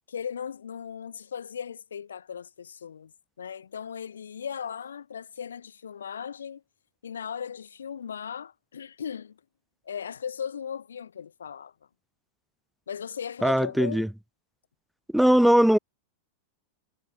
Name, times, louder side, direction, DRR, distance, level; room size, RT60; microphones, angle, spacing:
voice 1, 0.1-3.1 3.4-6.6 7.0-9.4 9.8-11.7 12.9-14.1, left 7 dB, 70° left, 4.1 m, -37 dB
voice 2, 13.4-14.1 15.1-15.8, equal, ahead, 3.0 m, -20 dB
figure-of-eight pair, 90°, 0 cm